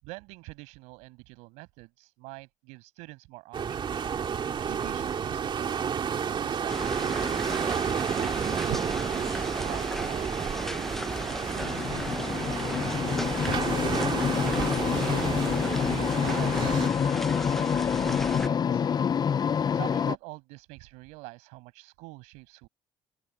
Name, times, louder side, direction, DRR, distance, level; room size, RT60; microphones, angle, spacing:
voice 1, 0.0-3.9 4.6-6.0 6.4-7.6 8.1-11.0 11.4-13.9 14.5-15.3 15.8-19.0 19.7-22.7, right 25 dB, 85° right, 6.8 m, -45 dB
sound 1, 3.5-16.9, right 7 dB, 45° right, 2.5 m, -31 dB
sound 2, 6.7-18.5, equal, 5° left, 0.7 m, -36 dB
sound 3, 11.6-20.2, left 7 dB, 35° left, 0.5 m, -27 dB
open air
supercardioid pair, 80°, 11 cm